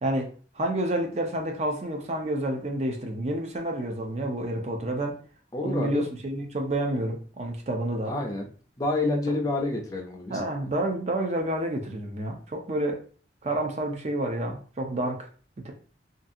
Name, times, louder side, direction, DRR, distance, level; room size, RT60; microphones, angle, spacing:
voice 1, 0.0-5.2 5.6-8.1 10.3-13.0 13.4-15.3 15.6-15.7, right 1 dB, 35° right, 2 dB, 0.5 m, -29 dB
voice 2, 5.5-6.0 8.1-8.5 8.8-10.4, left 2 dB, 20° left, 0 dB, 0.5 m, -28 dB
2.6 x 2.4 x 2.6 m, 0.41 s
head